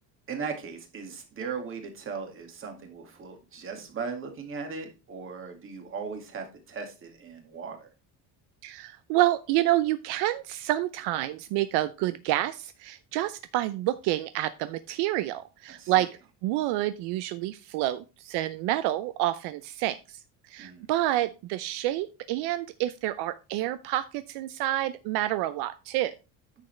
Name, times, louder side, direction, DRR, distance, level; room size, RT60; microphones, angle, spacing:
voice 1, 0.3-7.9 15.7-16.1 20.6-20.9, right 5 dB, 30° right, 4 dB, 2.0 m, -38 dB
voice 2, 8.6-16.1 16.4-20.2 20.5-26.1, right 15 dB, 75° right, 13 dB, 0.7 m, -28 dB
9.6 x 6.6 x 3.2 m, 0.30 s
cardioid pair, 155°, 41 cm